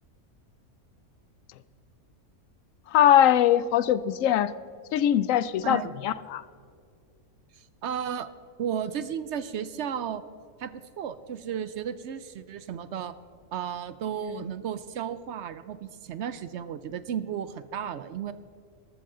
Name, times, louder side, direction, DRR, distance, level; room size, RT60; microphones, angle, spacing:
voice 1, 2.9-4.5 4.9-6.4, left 11 dB, 70° left, 17 dB, 0.9 m, -21 dB
voice 2, 7.5-8.3 8.6-10.2 10.6-13.1 13.5-18.3, right 8 dB, 65° right, 14 dB, 0.7 m, -34 dB
14.0 x 13.0 x 3.8 m, 2.3 s
omnidirectional pair, 1.5 m